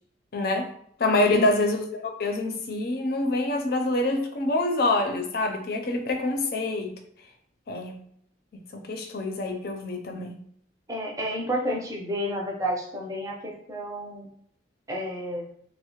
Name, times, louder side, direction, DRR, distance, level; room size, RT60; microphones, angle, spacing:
voice 1, 0.3-0.7 1.0-6.9 7.7-8.0 8.5-10.4, left 2 dB, 55° left, 0.5 m, -26 dB
voice 2, 10.9-14.3 14.9-15.4, equal, 15° right, 0.6 m, -30 dB
3.2 x 2.0 x 3.0 m
head